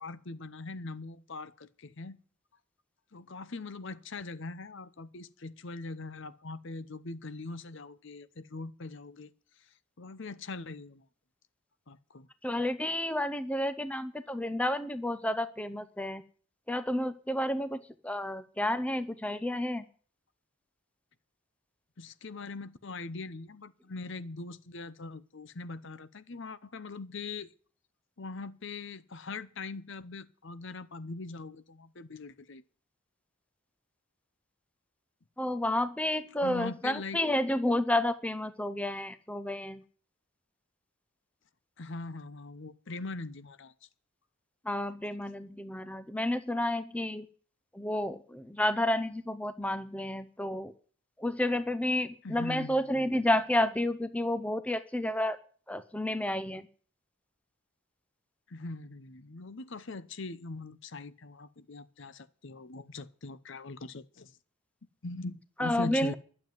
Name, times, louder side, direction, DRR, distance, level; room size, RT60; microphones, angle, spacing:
voice 1, 0.0-2.2 3.1-9.3 10.0-11.0 11.9-12.3 22.0-27.5 28.2-32.6 36.4-37.2 41.8-43.7 52.2-53.1 58.5-64.3 65.0-66.1, left 3 dB, 55° left, 0.8 m, -41 dB
voice 2, 12.4-16.2 16.7-19.8 35.4-39.8 44.7-47.3 47.7-50.7 51.2-55.4 55.7-56.7 65.6-66.1, left 1 dB, 5° left, 0.5 m, -31 dB
12.0 x 7.7 x 9.1 m
head